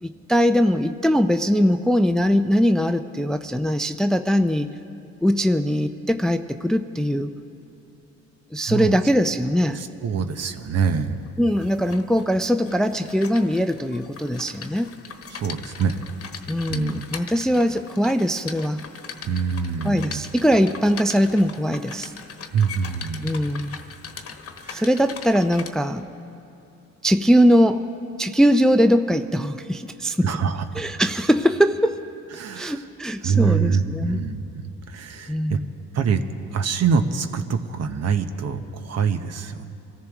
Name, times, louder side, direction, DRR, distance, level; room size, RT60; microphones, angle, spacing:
voice 1, 0.0-4.7 5.2-7.3 8.5-9.8 11.4-14.9 16.5-18.8 19.8-22.1 23.2-23.7 24.7-26.1 27.0-27.9 28.2-30.3 30.8-32.0 32.6-34.2 35.3-35.7, equal, ahead, 9 dB, 0.4 m, -21 dB
voice 2, 8.7-9.0 9.7-11.2 15.3-16.0 16.7-17.0 19.2-20.2 22.5-23.4 24.6-24.9 30.2-30.8 32.3-32.8 33.2-34.6 34.9-35.6 35.9-36.2 36.5-39.7, right 6 dB, 55° right, 8 dB, 1.0 m, -25 dB
sound 1, 11.0-25.7, left 6 dB, 50° left, 1.2 m, -40 dB
25.0 x 14.5 x 3.6 m, 2.8 s
cardioid pair, 90°, 30 cm